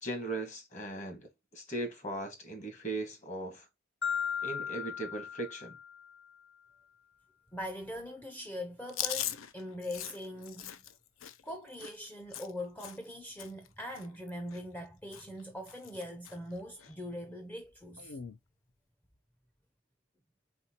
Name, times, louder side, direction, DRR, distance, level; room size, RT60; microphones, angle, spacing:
voice 1, 0.0-1.2 1.5-3.7 4.4-5.8, right 2 dB, 35° left, 1.4 m, -38 dB
Marimba xylophone, 4.0-6.2, left 7 dB, 55° left, 0.9 m, -36 dB
voice 2, 7.5-10.7 11.4-18.2, left 1 dB, 10° left, 0.4 m, -42 dB
Chewing mastication, 8.9-13.1 13.4-13.7 13.9-14.9 15.1-15.4 15.7-16.4 16.8-16.9 18.0-18.4, left 10 dB, 85° left, 0.5 m, -40 dB
4.3 x 4.1 x 2.8 m
head